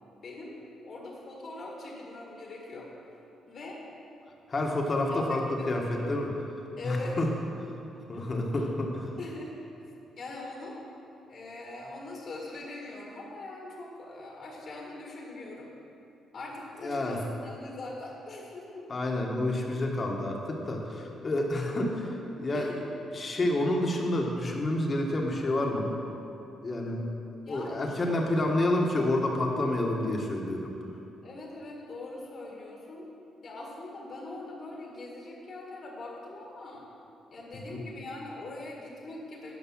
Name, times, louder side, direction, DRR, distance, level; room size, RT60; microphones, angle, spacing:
voice 1, 0.2-2.9 3.5-3.8 5.1-5.4 5.8-6.1 6.8-7.2 8.1-8.2 8.5-8.6 9.2-9.5 10.2-10.8 11.3-15.7 16.3-18.9 22.5-22.9 27.4-28.5 31.2-33.1 33.4-36.9 37.3-39.6, left 2 dB, 55° left, -2 dB, 1.9 m, -42 dB
voice 2, 4.5-6.3 6.8-7.3 8.1-9.1 16.8-17.2 18.9-22.7 23.1-26.3 26.6-27.0 27.5-30.8 37.5-37.8, left 1 dB, 35° left, 0 dB, 1.5 m, -29 dB
11.0 x 5.3 x 6.2 m, 2.8 s
cardioid pair, 90°, 0 cm